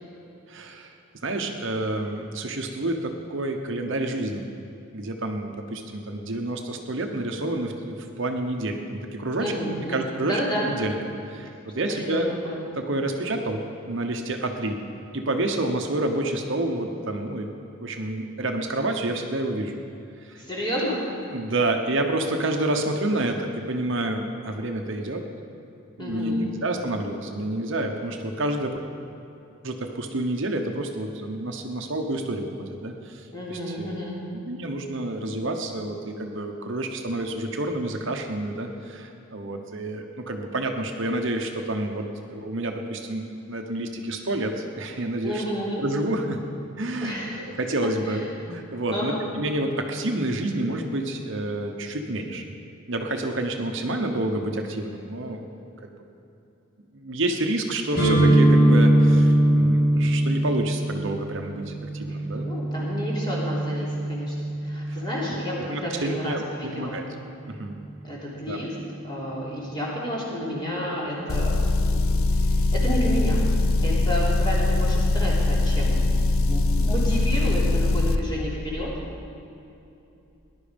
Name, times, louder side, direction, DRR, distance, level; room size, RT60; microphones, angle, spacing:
voice 1, 0.5-0.9 1.2-4.5 4.9-9.5 9.9-10.4 10.7-11.0 11.3-12.3 12.8-14.8 15.1-17.5 17.8-19.8 20.2-20.4 21.3-25.2 26.0-28.8 29.6-33.9 34.5-45.4 45.8-46.4 46.8-52.4 52.9-55.5 56.9-62.4 64.9-65.0 65.7-67.0 67.5-67.7 68.5-68.6, right 1 dB, 55° right, 4 dB, 1.0 m, -29 dB
voice 2, 9.4-10.9 11.9-12.6 20.4-21.0 26.0-26.5 33.3-34.2 45.2-45.8 47.0-47.4 48.1-48.2 48.9-49.2 62.4-67.0 68.0-68.7 69.0-73.4 73.8-76.1 76.5-78.9, equal, 20° left, -6 dB, 3.4 m, -31 dB
sound 1, 57.9-65.7, right 1 dB, 45° left, 4.2 m, -21 dB
Motor vehicle (road) / Engine, 71.3-78.2, left 2 dB, 70° left, 0.7 m, -22 dB
18.5 x 11.0 x 5.2 m, 2.8 s
head